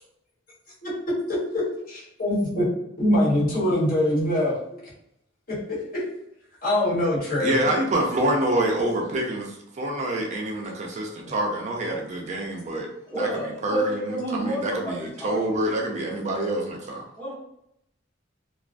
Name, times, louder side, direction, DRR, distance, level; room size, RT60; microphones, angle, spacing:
voice 1, 1.5-2.7 3.0-4.6 5.5-6.0 6.6-7.5, left 1 dB, 50° left, -8 dB, 1.2 m, -23 dB
voice 2, 7.4-12.9 13.2-14.0 14.3-17.0, right 1 dB, 40° right, 0 dB, 0.4 m, -26 dB
voice 3, 13.1-15.6 17.2-17.3, right 1 dB, 10° left, -8 dB, 0.9 m, -30 dB
2.3 x 2.2 x 2.4 m, 0.77 s
head